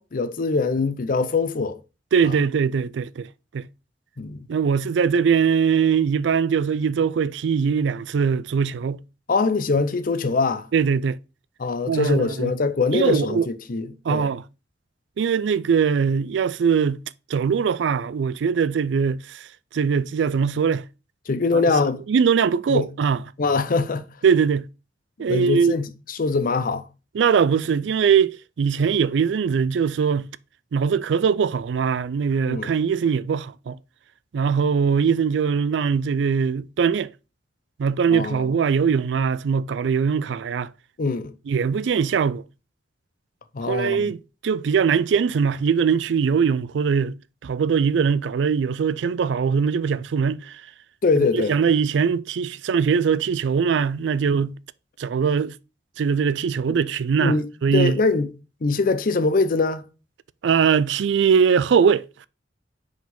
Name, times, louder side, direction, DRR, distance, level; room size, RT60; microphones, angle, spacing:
voice 1, 0.0-1.8 2.2-2.3 4.2-4.4 9.3-10.7 11.6-14.3 21.3-22.0 22.7-22.9 23.4-24.1 25.2-26.9 32.5-32.7 38.1-38.5 41.0-41.3 43.5-44.1 51.0-51.6 56.7-56.8 57.2-58.3 58.6-59.8, left 4 dB, 50° left, 0.5 m, -23 dB
voice 2, 2.1-3.3 3.5-3.7 4.5-9.0 10.7-11.2 11.9-12.5 12.9-13.5 14.0-14.4 15.2-17.0 17.3-19.5 19.7-20.8 21.5-21.6 22.1-23.2 24.2-24.7 25.2-25.7 27.1-30.3 30.7-33.8 34.3-37.1 37.8-40.7 41.5-42.4 43.7-47.1 47.4-50.6 51.2-54.6 55.0-55.5 56.0-58.0 60.4-62.3, right 6 dB, 75° right, 0.4 m, -21 dB
5.0 x 4.0 x 5.2 m
head